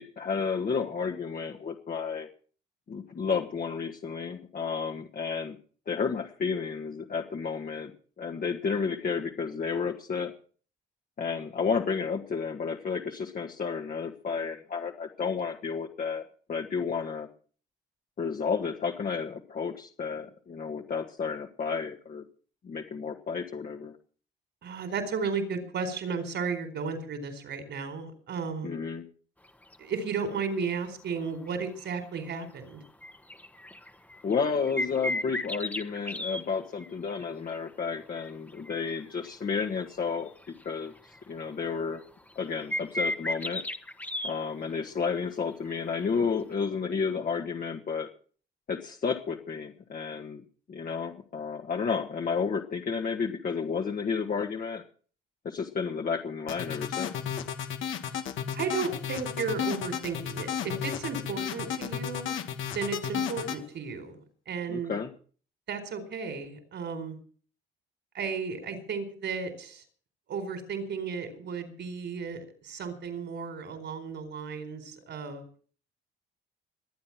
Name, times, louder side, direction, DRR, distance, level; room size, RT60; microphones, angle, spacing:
voice 1, 0.0-2.3 2.9-5.6 5.9-7.9 8.2-10.3 11.2-17.3 18.2-22.2 22.6-23.9 28.6-29.0 34.2-40.3 40.6-40.9 41.3-42.0 42.4-43.6 44.2-48.1 48.7-50.4 50.7-54.8 55.4-57.1 64.7-65.1, left 5 dB, 45° left, 0 dB, 1.9 m, -31 dB
voice 2, 24.6-28.7 29.8-32.8 58.5-62.4 62.7-64.2 64.5-64.9 65.7-67.2 68.1-69.8 70.3-75.5, right 5 dB, 65° right, 9 dB, 4.4 m, -34 dB
sound 1, 29.4-29.8 30.6-30.7 31.2-31.5 31.8-31.9 32.2-32.5 32.9-36.4 36.8-37.7 38.1-39.6 39.9-40.0 40.3-41.4 42.0-42.1 42.3-44.3 45.7-45.8 46.5-46.6, left 1 dB, 10° left, 1.4 m, -35 dB
sound 2, 56.5-63.6, left 8 dB, 80° left, 2.2 m, -33 dB
23.0 x 8.8 x 6.0 m, 0.44 s
cardioid pair, 90°, 20 cm